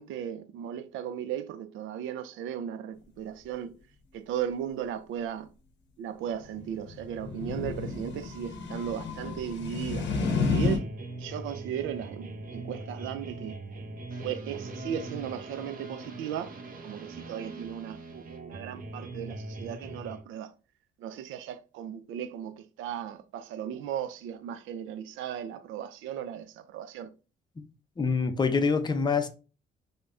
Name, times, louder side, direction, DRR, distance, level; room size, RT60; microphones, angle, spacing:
voice 1, 0.0-3.8 4.1-5.5 6.0-10.1 10.5-10.9 11.2-13.6 14.2-16.5 16.8-20.5 21.0-27.1, right 9 dB, 85° right, 0.4 m, -36 dB
sound 1, 6.5-10.8, left 4 dB, 65° left, 0.7 m, -31 dB
sound 2, 10.1-20.2, right 2 dB, 45° right, 0.7 m, -41 dB
voice 2, 28.0-29.3, left 5 dB, 20° left, 0.5 m, -26 dB
3.3 x 2.1 x 2.5 m
cardioid pair, 90°, 20 cm